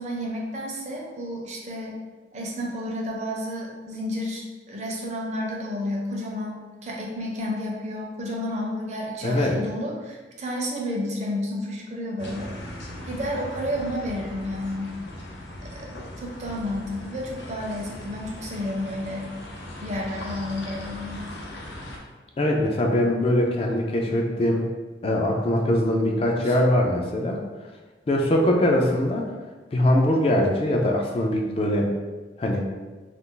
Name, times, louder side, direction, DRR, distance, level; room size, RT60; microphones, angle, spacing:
voice 1, 0.0-2.0 2.3-12.8 13.0-15.0 15.6-15.9 16.2-19.3 19.8-21.3 26.4-26.6, left 1 dB, 40° right, -1 dB, 0.5 m, -31 dB
voice 2, 9.2-9.6 22.4-24.7 25.0-27.4 28.1-29.3 29.7-31.9 32.4-32.6, left 1 dB, 35° left, 0 dB, 0.3 m, -22 dB
sound 1, 12.2-22.0, left 1 dB, 85° left, 0.6 m, -39 dB
2.4 x 2.3 x 3.7 m, 1.3 s
head